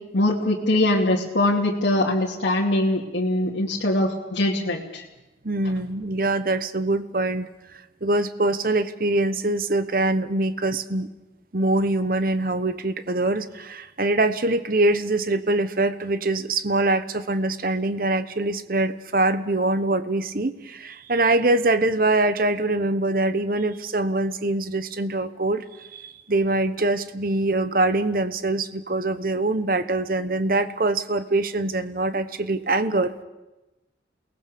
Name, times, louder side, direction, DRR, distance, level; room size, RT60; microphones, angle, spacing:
voice 1, 0.1-5.0, left 1 dB, 85° left, -3 dB, 2.5 m, -22 dB
voice 2, 5.4-7.5 8.0-11.1 11.5-33.2, right 2 dB, 50° right, 11 dB, 1.0 m, -23 dB
28.5 x 19.0 x 6.9 m, 1.0 s
head